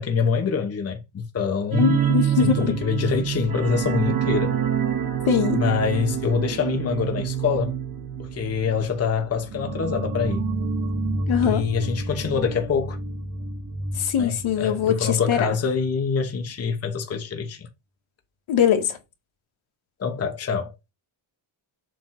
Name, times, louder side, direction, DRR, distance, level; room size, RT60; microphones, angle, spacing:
voice 1, 0.0-2.0 2.4-4.6 5.5-7.7 8.2-10.4 11.4-13.0 14.2-17.7 20.0-20.7, left 6 dB, 30° left, 1.0 m, -25 dB
sound 1, 1.7-15.0 15.3-15.5 15.8-15.9, right 7 dB, 45° right, 1.9 m, -27 dB
voice 2, 1.8-2.8 5.3-5.6 11.3-11.7 14.0-15.5 18.5-19.0, left 8 dB, 75° left, 2.0 m, -22 dB
7.5 x 3.5 x 5.8 m
wide cardioid pair, 180°, 49 cm